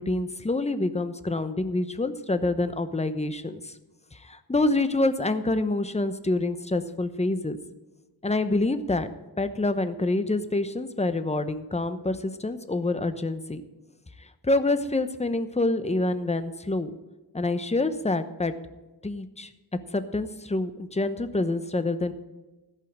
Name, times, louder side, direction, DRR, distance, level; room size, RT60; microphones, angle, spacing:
voice 1, 0.0-3.7 4.1-7.6 8.2-9.1 9.4-13.6 14.4-16.9 17.3-18.5 19.0-19.5 19.9-22.1, left 2 dB, 15° left, 10 dB, 0.9 m, -27 dB
14.0 x 5.6 x 8.6 m, 1.1 s
wide cardioid pair, 70°, 41 cm